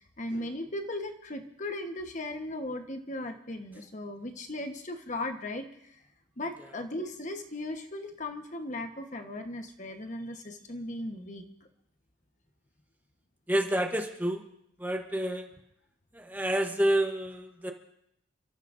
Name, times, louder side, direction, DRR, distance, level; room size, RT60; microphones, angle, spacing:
voice 1, 0.0-6.0 6.4-11.4, left 1 dB, 40° left, 5 dB, 1.2 m, -37 dB
voice 2, 13.5-14.4 14.8-15.5 16.1-17.7, right 1 dB, 10° right, 4 dB, 0.9 m, -28 dB
29.5 x 14.0 x 2.6 m, 0.77 s
head